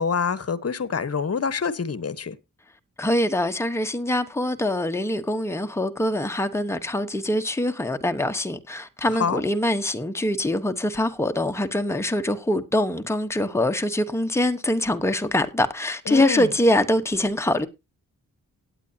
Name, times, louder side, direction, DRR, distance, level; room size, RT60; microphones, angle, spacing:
voice 1, 0.0-2.4 9.2-9.4 16.1-16.5, left 5 dB, 45° left, 1.1 m, -26 dB
voice 2, 3.0-17.7, left 1 dB, 10° left, 1.1 m, -24 dB
17.5 x 9.0 x 2.8 m
cardioid pair, 80°, 34 cm